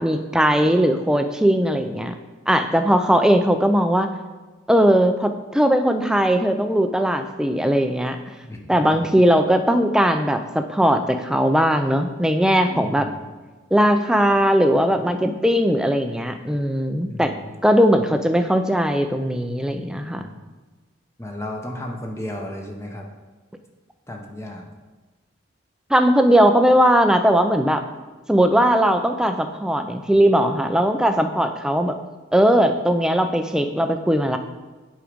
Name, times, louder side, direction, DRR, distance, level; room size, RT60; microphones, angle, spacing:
voice 1, 0.0-2.2 2.5-4.1 4.7-8.2 8.7-13.1 13.7-17.3 17.6-20.3 25.9-27.8 28.3-31.9 32.3-34.4, equal, 5° right, 7 dB, 0.4 m, -19 dB
voice 2, 8.4-9.3 12.6-13.3 17.1-17.5 20.1-20.5 21.2-23.1 24.1-24.7, left 1 dB, 15° left, 1 dB, 0.8 m, -34 dB
7.8 x 4.9 x 5.1 m, 1.3 s
head